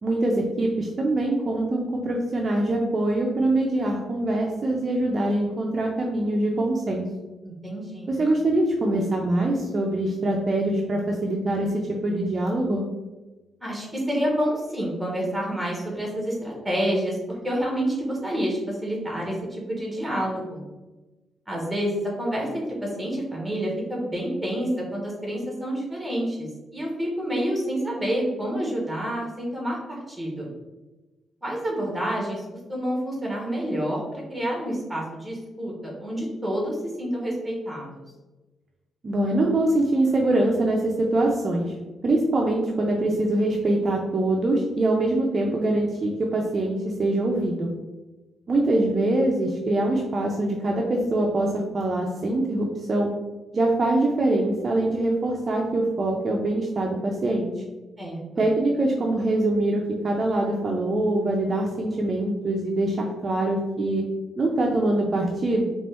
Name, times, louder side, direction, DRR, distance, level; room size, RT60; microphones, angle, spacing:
voice 1, 0.0-7.0 8.1-11.7 12.0-12.8 39.0-41.7 42.0-47.7 48.5-53.1 53.5-57.5 58.4-64.0 64.4-65.7, right 1 dB, 35° right, -1 dB, 0.5 m, -24 dB
voice 2, 7.4-8.1 13.6-17.2 17.4-20.6 21.5-30.5 31.4-32.4 32.7-38.0 58.0-58.4, equal, 5° right, -2 dB, 1.4 m, -28 dB
4.1 x 3.0 x 3.4 m, 1.1 s
cardioid pair, 135°, 0 cm